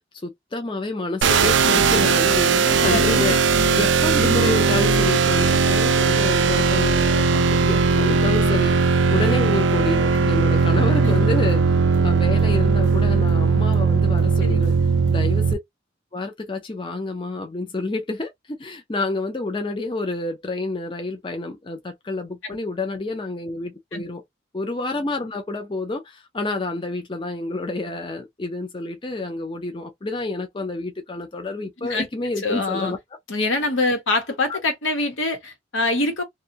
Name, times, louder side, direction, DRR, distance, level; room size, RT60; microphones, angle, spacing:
voice 1, 0.2-3.4 3.7-11.6 12.0-14.8 15.1-15.6 16.1-24.2 24.5-33.0 34.5-34.6, left 2 dB, 25° left, 0.5 m, -29 dB
sound 1, 1.2-15.5, right 5 dB, 70° right, 0.4 m, -18 dB
voice 2, 1.6-2.1 2.9-3.6 10.1-10.4 11.0-11.3 14.4-15.0 22.4-22.5 23.9-24.0 31.8-32.1 32.4-32.9 33.3-36.2, left 2 dB, 80° left, 1.0 m, -25 dB
2.5 x 2.3 x 2.7 m
head